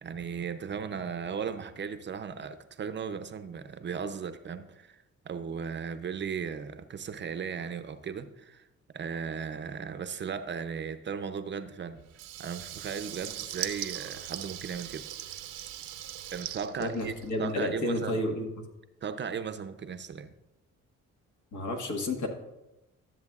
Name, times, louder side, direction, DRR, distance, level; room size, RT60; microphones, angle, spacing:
voice 1, 0.0-8.6 8.9-12.0 12.4-15.1 16.3-17.1 17.4-18.2 19.0-20.3, right 6 dB, 40° right, 10 dB, 0.5 m, -36 dB
Water tap faucet / Liquid, 12.1-17.6, right 12 dB, 85° right, 0.7 m, -40 dB
voice 2, 16.8-18.5 21.5-22.3, left 1 dB, 75° left, 3 dB, 1.5 m, -31 dB
13.0 x 7.5 x 2.4 m, 0.95 s
cardioid pair, 90°, 30 cm